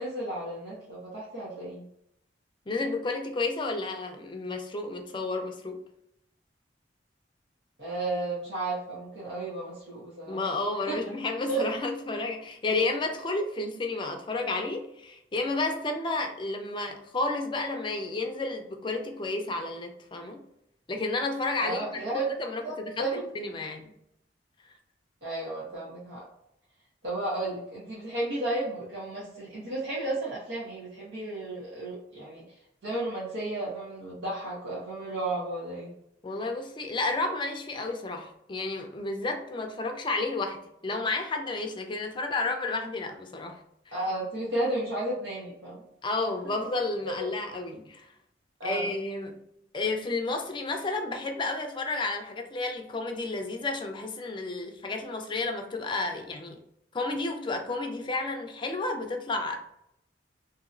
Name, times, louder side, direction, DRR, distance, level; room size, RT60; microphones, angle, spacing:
voice 1, 0.0-1.8 7.8-10.5 10.9-11.0 11.5-11.6 21.6-22.3 22.6-23.2 25.2-26.2 27.0-32.4 32.8-35.9 43.9-45.8 47.1-47.3 48.6-48.9, right 2 dB, 80° right, -8 dB, 1.2 m, -33 dB
voice 2, 2.7-5.8 10.3-20.4 20.9-23.9 36.2-43.6 43.9-44.0 46.0-48.1 48.6-49.4 49.7-56.6 56.9-59.6, left 3 dB, 25° left, 3 dB, 0.4 m, -31 dB
2.9 x 2.7 x 2.5 m, 0.77 s
head